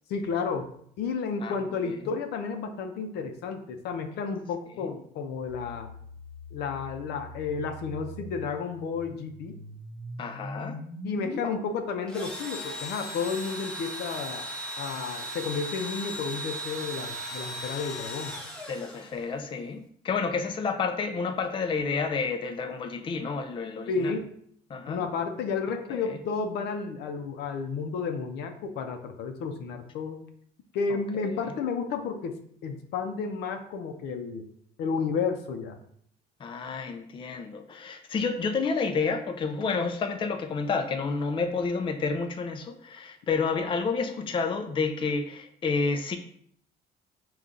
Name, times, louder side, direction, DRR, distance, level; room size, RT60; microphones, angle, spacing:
voice 1, 0.1-0.7 1.0-5.9 6.5-9.6 11.0-14.5 14.8-18.4 23.9-24.3 24.9-30.2 30.7-34.4 34.8-35.8, left 5 dB, 80° left, 5 dB, 0.6 m, -32 dB
sound 1, 5.5-11.5, equal, 45° left, 0.9 m, -42 dB
voice 2, 10.2-10.8 18.7-24.1 24.7-25.0 25.9-26.2 30.9-31.0 31.4-31.5 36.4-46.2, left 4 dB, 30° left, 6 dB, 0.4 m, -30 dB
Engine / Drill, 12.1-19.4, equal, 5° left, 0.9 m, -37 dB
5.5 x 2.4 x 3.7 m, 0.65 s
cardioid pair, 110°, 17 cm